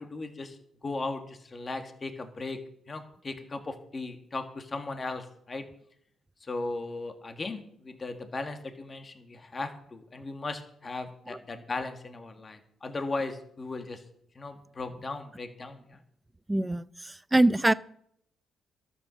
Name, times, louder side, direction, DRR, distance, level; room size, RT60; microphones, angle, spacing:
voice 1, 0.0-2.6 2.9-5.7 6.4-14.0 14.4-16.0, left 3 dB, 30° left, 6 dB, 1.8 m, -37 dB
voice 2, 16.5-17.7, right 2 dB, 15° right, 17 dB, 0.5 m, -24 dB
12.5 x 8.5 x 6.3 m, 0.70 s
cardioid pair, 90°, 0 cm